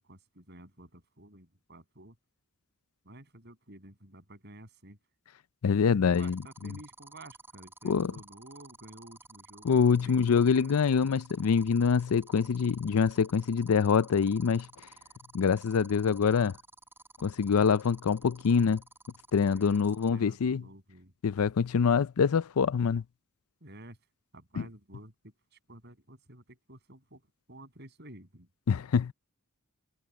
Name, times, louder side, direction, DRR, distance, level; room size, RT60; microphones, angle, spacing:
voice 1, 0.0-2.2 3.0-5.0 6.0-10.8 19.4-21.1 23.6-24.0 24.3-27.2 27.5-28.5, right 1 dB, 50° right, 6.9 m, -51 dB
voice 2, 5.6-6.4 7.8-8.1 9.6-14.7 15.3-16.5 17.2-18.8 19.3-20.6 21.2-23.0 24.6-24.7 28.7-29.1, left 6 dB, 90° left, 0.5 m, -25 dB
sound 1, 6.1-20.1, right 2 dB, 10° right, 5.3 m, -52 dB
head